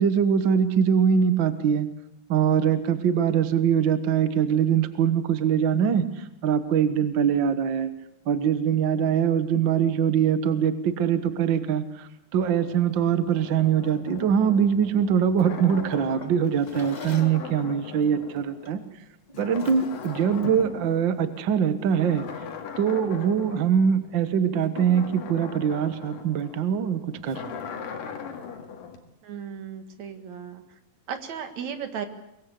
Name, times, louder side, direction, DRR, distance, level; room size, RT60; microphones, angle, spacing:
voice 1, 0.0-1.9 2.3-7.9 8.3-18.8 19.4-22.2 22.8-27.5, right 8 dB, 75° right, 11 dB, 1.0 m, -23 dB
sound 1, 12.6-19.1 19.4-21.4 21.8-29.0, left 7 dB, 70° left, 3.6 m, -40 dB
Drawer open or close, 16.2-17.4 18.6-18.9 19.3-20.8, left 3 dB, 55° left, 0.4 m, -44 dB
voice 2, 29.2-30.8 31.1-32.1, right 7 dB, 55° right, 8 dB, 2.8 m, -35 dB
23.5 x 21.0 x 8.2 m, 0.81 s
omnidirectional pair, 4.2 m